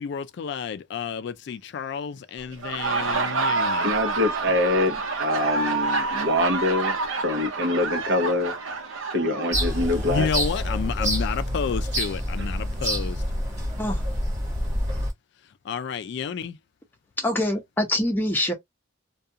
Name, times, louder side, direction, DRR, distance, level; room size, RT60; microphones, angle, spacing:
voice 1, 0.0-3.9 10.1-13.2 15.6-16.6, left 6 dB, 55° left, 0.3 m, -30 dB
Laughter, 2.5-10.2, right 4 dB, 90° right, 0.7 m, -28 dB
voice 2, 3.8-8.6 9.1-10.3, left 1 dB, 60° right, 0.7 m, -25 dB
sound 1, 9.5-15.1, equal, 35° right, 1.0 m, -27 dB
voice 3, 17.2-18.5, left 1 dB, 10° left, 0.7 m, -24 dB
2.4 x 2.3 x 2.6 m
head